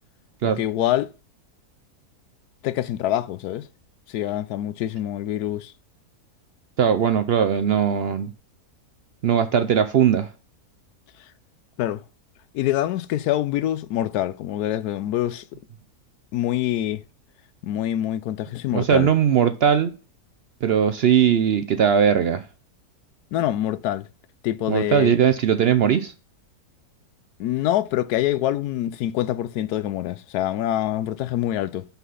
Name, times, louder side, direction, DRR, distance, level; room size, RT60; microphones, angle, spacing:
voice 1, 0.4-1.1 2.6-3.7 4.1-5.7 11.8-12.0 12.5-15.4 16.3-17.0 17.6-19.1 23.3-24.1 24.4-25.1 27.4-31.8, left 13 dB, 80° left, 1.1 m, -25 dB
voice 2, 6.8-8.3 9.2-10.3 18.7-19.9 20.6-22.4 24.7-26.1, right 8 dB, 70° right, 0.5 m, -19 dB
5.9 x 5.8 x 5.5 m
omnidirectional pair, 1.6 m